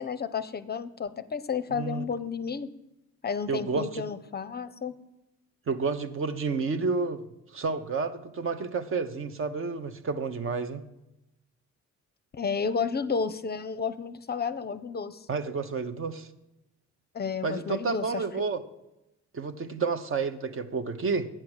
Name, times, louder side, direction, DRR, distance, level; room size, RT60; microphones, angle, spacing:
voice 1, 0.0-2.7 3.2-4.9 12.3-15.3 17.1-18.2, left 5 dB, 35° left, 12 dB, 0.5 m, -31 dB
voice 2, 1.7-2.0 3.5-4.0 5.7-7.2 7.5-10.8 15.3-16.3 17.4-18.6 19.3-21.3, right 4 dB, 45° right, 10 dB, 0.8 m, -30 dB
8.9 x 5.8 x 7.9 m, 0.92 s
cardioid pair, 90°, 30 cm